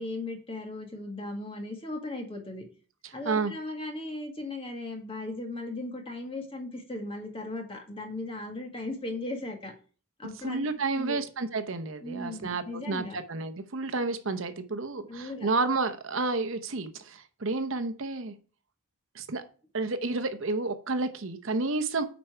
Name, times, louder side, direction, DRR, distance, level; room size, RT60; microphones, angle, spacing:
voice 1, 0.0-2.6 3.1-9.7 10.2-10.7 10.9-11.2 12.0-13.2 15.1-15.5, left 2 dB, 25° left, 2 dB, 1.8 m, -37 dB
voice 2, 3.0-3.5 10.4-18.3 19.1-19.4 19.7-22.0, right 3 dB, 60° right, 9 dB, 0.8 m, -30 dB
9.2 x 4.5 x 4.8 m, 0.39 s
head